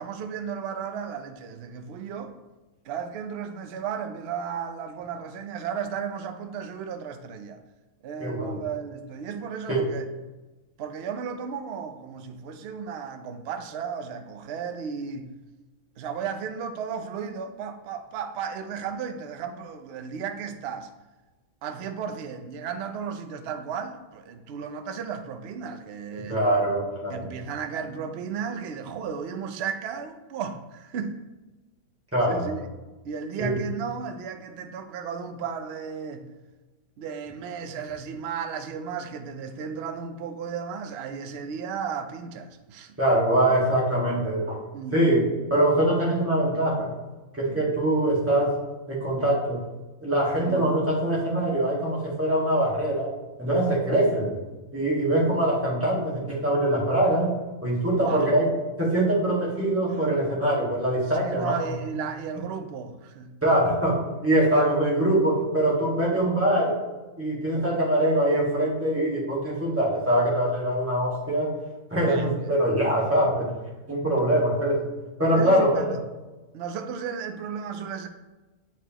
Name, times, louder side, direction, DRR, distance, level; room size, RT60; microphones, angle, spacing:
voice 1, 0.0-2.3 2.8-7.6 8.0-10.0 10.8-15.3 16.0-20.9 21.6-26.4 27.1-31.2 32.3-32.7 33.0-36.3 37.0-43.0 44.7-45.0 47.5-47.7 50.4-50.7 53.9-54.0 55.1-55.3 58.0-58.3 61.1-63.3 72.0-72.6 74.2-74.4 75.3-76.0 76.5-78.1, right 6 dB, 60° right, 0.7 m, -34 dB
voice 2, 8.2-8.6 9.7-9.9 26.3-27.3 32.1-32.5 33.4-33.6 43.0-44.6 44.9-46.9 47.3-48.6 48.9-49.6 50.0-53.1 53.4-54.3 54.7-57.3 57.6-58.5 58.8-61.5 63.4-66.8 67.2-71.5 71.9-73.5 73.9-74.9 75.2-76.0, right 1 dB, 10° right, 1.7 m, -23 dB
8.1 x 4.4 x 2.9 m
omnidirectional pair, 1.5 m